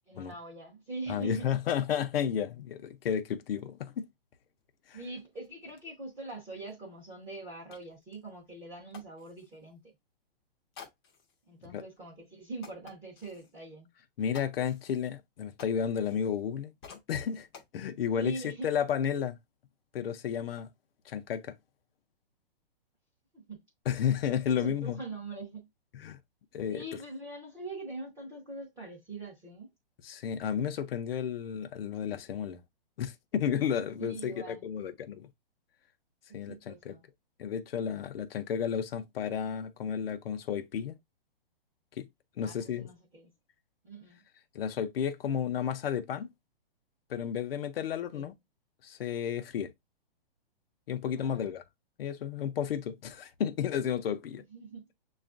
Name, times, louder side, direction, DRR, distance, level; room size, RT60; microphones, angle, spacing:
voice 1, 0.1-1.5 4.9-9.8 11.5-13.9 18.2-18.7 23.3-23.6 24.6-25.7 26.7-29.7 34.0-34.7 36.3-37.0 42.4-43.3 43.8-44.2 48.1-48.3 51.1-51.5 54.5-54.9, right 2 dB, 10° right, 0.7 m, -43 dB
voice 2, 1.1-4.1 4.9-5.0 11.7-11.8 14.2-17.5 17.7-19.4 19.9-20.7 21.1-21.5 23.9-25.0 25.9-26.2 26.5-26.8 30.0-32.6 33.0-35.3 36.3-37.0 37.4-41.0 42.0-42.1 42.4-42.9 44.5-46.3 47.1-48.3 48.8-49.7 50.9-51.6 52.0-54.4, left 8 dB, 75° left, 0.6 m, -32 dB
sound 1, 4.6-4.7 4.9-9.6 10.7-11.4 12.0-12.1 12.6-13.5 14.3-16.5 16.8-17.7, left 6 dB, 25° left, 0.6 m, -54 dB
6.7 x 2.4 x 2.4 m
hypercardioid pair, 165°, 29 cm